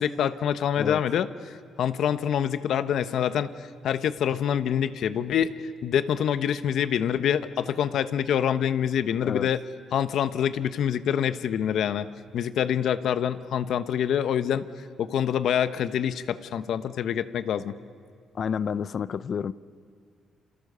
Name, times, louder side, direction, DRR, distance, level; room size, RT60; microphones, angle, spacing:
voice 1, 0.0-3.5 3.8-9.6 9.9-12.1 12.3-14.7 15.0-17.7, left 9 dB, 70° left, 12 dB, 1.0 m, -26 dB
voice 2, 18.3-19.5, left 7 dB, 55° left, 17 dB, 0.7 m, -29 dB
29.0 x 27.5 x 6.8 m, 2.1 s
cardioid pair, 90°, 0 cm